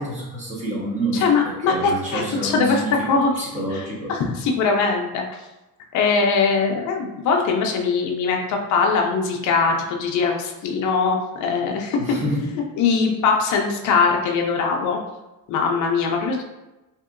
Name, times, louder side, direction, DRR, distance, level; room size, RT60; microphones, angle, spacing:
voice 1, 0.0-3.1 3.4-4.1 12.0-12.6, right 1 dB, 20° right, -6 dB, 0.8 m, -28 dB
voice 2, 1.1-2.8 3.1-3.3 3.7-3.8 4.1-5.4 5.9-12.0 12.8-15.0 15.5-16.4, left 5 dB, 55° left, 1 dB, 0.5 m, -21 dB
2.8 x 2.7 x 2.4 m, 1.0 s
cardioid pair, 160°, 36 cm